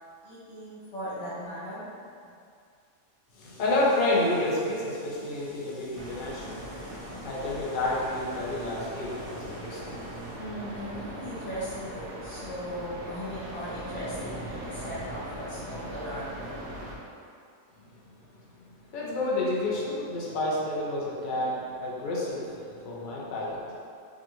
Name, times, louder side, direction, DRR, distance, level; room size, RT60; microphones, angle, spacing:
voice 1, 0.2-1.9 2.2-2.3 10.4-16.7, equal, 60° left, -9 dB, 1.3 m, -38 dB
voice 2, 3.3-10.4 18.9-23.8, left 2 dB, 45° left, -5 dB, 0.7 m, -30 dB
sound 1, 5.9-17.0, right 1 dB, 60° right, 0.3 m, -40 dB
4.7 x 2.5 x 3.0 m, 2.4 s
omnidirectional pair, 1.5 m